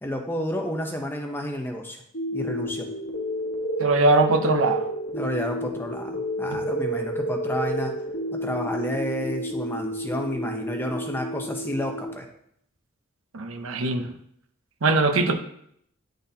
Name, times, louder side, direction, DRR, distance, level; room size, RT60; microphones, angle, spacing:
voice 1, 0.0-2.0 2.3-2.9 5.1-7.9 8.3-12.3, equal, 10° left, 3 dB, 0.7 m, -31 dB
sound 1, 2.1-12.1, equal, 70° left, 1.1 m, -30 dB
voice 2, 3.8-4.9 6.5-6.6 13.3-14.1 14.8-15.3, right 3 dB, 85° right, 7 dB, 0.7 m, -21 dB
10.0 x 3.9 x 2.8 m, 0.70 s
head